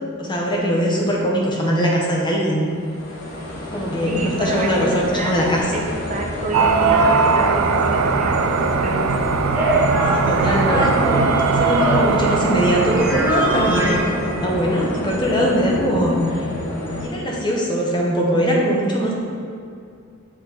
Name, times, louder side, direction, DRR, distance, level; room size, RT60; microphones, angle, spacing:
voice 1, 0.2-2.7 3.7-5.6 10.1-11.2 11.5-16.5 17.0-19.1, equal, 20° left, -2 dB, 0.8 m, -21 dB
sound 1, 2.6-17.0, left 1 dB, 55° left, 1.6 m, -28 dB
voice 2, 4.1-5.4 6.1-9.1, right 2 dB, 35° right, -1 dB, 0.8 m, -28 dB
sound 2, 6.5-14.5, right 5 dB, 65° right, 0.3 m, -21 dB
sound 3, 6.6-14.9, right 1 dB, 5° right, 1.1 m, -24 dB
7.0 x 4.1 x 4.7 m, 2.4 s
head